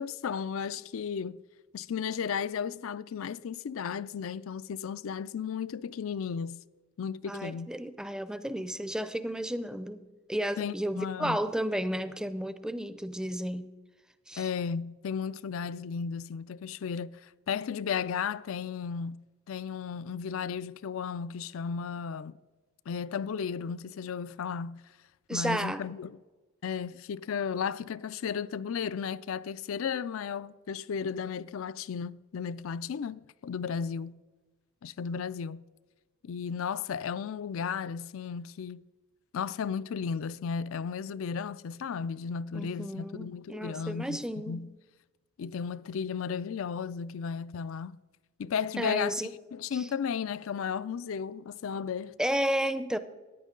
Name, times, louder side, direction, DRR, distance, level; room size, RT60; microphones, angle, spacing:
voice 1, 0.0-1.4 1.7-6.6 7.0-7.7 10.6-11.4 14.4-22.4 22.9-24.8 25.3-26.2 26.6-34.2 34.8-35.6 36.2-38.9 39.3-44.7 45.4-48.0 48.4-49.2 49.5-52.1, left 6 dB, 70° left, 0.4 m, -34 dB
voice 2, 7.2-10.0 10.3-13.7 14.3-14.5 25.3-25.8 42.5-44.7 48.8-49.3 49.7-49.9 52.2-53.0, equal, 5° right, 0.5 m, -32 dB
14.0 x 10.0 x 3.8 m
head